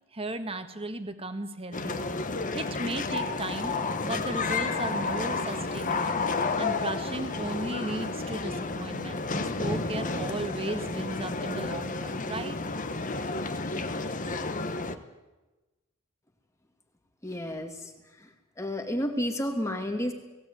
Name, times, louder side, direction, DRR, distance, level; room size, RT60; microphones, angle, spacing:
voice 1, 0.1-3.7 4.0-6.2 6.6-12.6, right 2 dB, 30° right, 8 dB, 1.7 m, -36 dB
sound 1, 1.7-15.0, left 3 dB, 40° left, 1.2 m, -31 dB
voice 2, 17.2-17.9 18.6-20.1, equal, 15° left, 4 dB, 2.4 m, -31 dB
19.0 x 16.0 x 9.4 m, 1.1 s
head